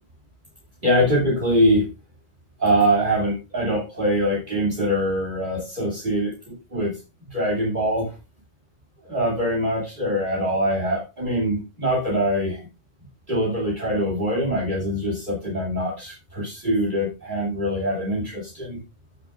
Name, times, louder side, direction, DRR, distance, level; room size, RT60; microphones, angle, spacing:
voice 1, 0.8-1.9 2.6-7.0 7.3-8.1 9.0-12.6 13.3-18.8, equal, 40° right, -3 dB, 2.9 m, -23 dB
14.0 x 6.8 x 2.4 m, 0.27 s
omnidirectional pair, 1.2 m